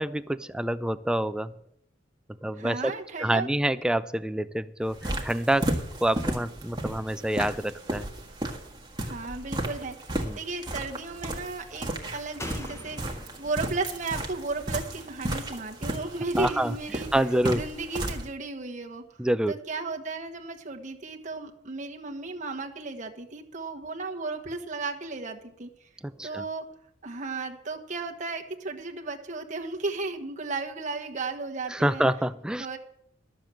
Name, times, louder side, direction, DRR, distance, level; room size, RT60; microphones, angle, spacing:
voice 1, 0.0-1.5 2.4-2.9 3.2-5.7 6.0-8.1 10.2-10.4 16.4-16.7 17.1-17.6 19.2-19.5 26.2-26.4 31.7-32.7, right 1 dB, 5° right, 14 dB, 0.3 m, -27 dB
voice 2, 2.6-3.5 9.0-17.1 17.5-19.0 19.5-25.9 26.2-26.6 27.0-32.0 32.6-32.8, right 3 dB, 40° right, 3 dB, 1.3 m, -34 dB
sound 1, 4.9-18.3, right 1 dB, 25° right, 1.6 m, -34 dB
Slam, 12.4-15.9 16.2-16.3, left 1 dB, 15° left, 0.9 m, -45 dB
12.5 x 7.1 x 7.5 m, 0.71 s
head